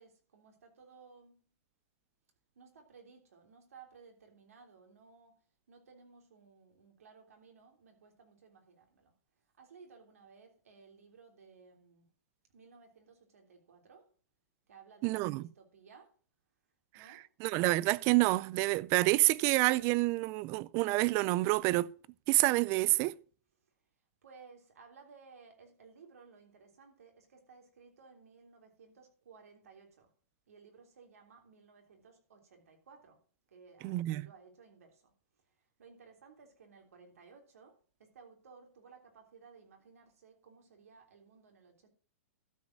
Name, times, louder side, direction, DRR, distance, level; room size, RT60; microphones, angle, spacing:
voice 1, 0.0-1.4 2.5-5.4 5.7-9.1 9.6-12.1 12.5-14.1 14.7-16.1 16.9-17.2 23.5-23.7 24.2-30.1 30.5-33.2 33.5-41.9, right 5 dB, 85° right, 3.3 m, -58 dB
voice 2, 15.0-15.4 17.4-21.9 22.3-23.2 33.8-34.2, right 20 dB, 35° right, 0.4 m, -28 dB
12.5 x 5.0 x 5.9 m
hypercardioid pair, 145°, 8 cm